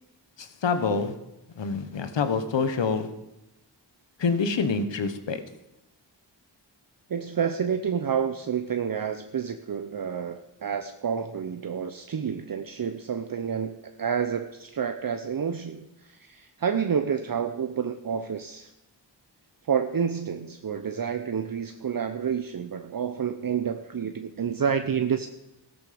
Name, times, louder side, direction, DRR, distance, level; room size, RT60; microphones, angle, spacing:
voice 1, 0.4-1.1 1.6-3.1 4.2-5.4, left 5 dB, 80° left, 10 dB, 1.2 m, -26 dB
voice 2, 7.1-18.7 19.7-25.3, right 7 dB, 50° right, 8 dB, 0.8 m, -29 dB
14.0 x 13.5 x 5.1 m, 0.92 s
cardioid pair, 45°, 43 cm